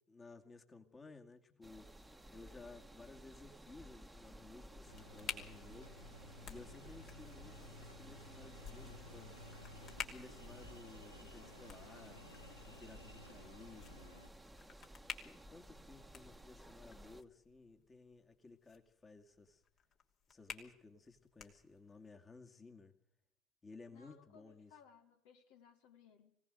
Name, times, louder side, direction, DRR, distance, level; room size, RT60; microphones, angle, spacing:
voice 1, 0.1-1.9 2.3-5.9 6.5-9.3 10.1-12.2 12.7-14.2 14.8-14.9 15.2-19.6 20.3-22.9 23.6-24.7, left 3 dB, 25° left, 4 dB, 2.3 m, -57 dB
sound 1, 1.6-17.2, right 1 dB, 10° right, 1.4 m, -56 dB
sound 2, 4.8-22.1, left 6 dB, 45° left, 3.0 m, -53 dB
sound 3, 4.9-14.3, left 2 dB, 90° left, 0.8 m, -56 dB
voice 2, 23.9-26.4, left 7 dB, 60° left, 5 dB, 1.9 m, -63 dB
24.0 x 17.5 x 6.6 m, 0.76 s
figure-of-eight pair, 60°, 0 cm